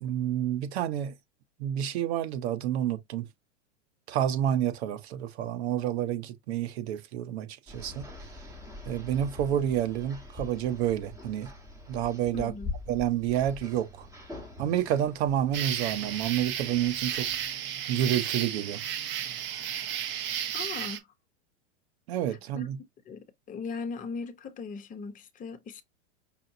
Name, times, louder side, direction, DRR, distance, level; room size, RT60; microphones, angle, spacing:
voice 1, 0.0-1.1 1.6-3.3 4.1-8.1 8.9-11.5 11.9-12.5 12.9-14.1 14.6-17.3 17.9-18.8 22.1-22.8, right 10 dB, 55° right, 1.0 m, -29 dB
sound 1, 7.7-17.5, left 2 dB, 10° right, 1.3 m, -44 dB
voice 2, 12.3-12.7 20.5-21.0 22.5-22.7 23.1-23.2 23.5-25.8, left 5 dB, 20° left, 0.9 m, -38 dB
sound 2, 15.5-21.0, right 10 dB, 30° right, 0.7 m, -33 dB
5.5 x 2.6 x 2.7 m
hypercardioid pair, 125°, 38 cm